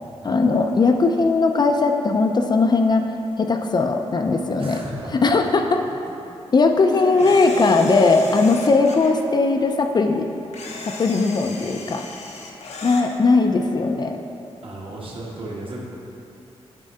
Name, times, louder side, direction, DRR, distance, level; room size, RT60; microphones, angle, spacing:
voice 1, 0.2-3.0 3.4-4.8 5.1-5.8 6.5-10.3 10.8-12.0 12.8-14.2, left 3 dB, 40° left, 4 dB, 0.4 m, -19 dB
voice 2, 4.6-5.3 6.9-7.3 7.7-8.3 14.6-15.8, right 1 dB, 50° right, -4 dB, 1.4 m, -36 dB
Camera, 7.2-9.1 10.5-13.1, left 3 dB, 80° left, 0.8 m, -36 dB
9.0 x 3.7 x 5.4 m, 2.8 s
wide cardioid pair, 140°, 11 cm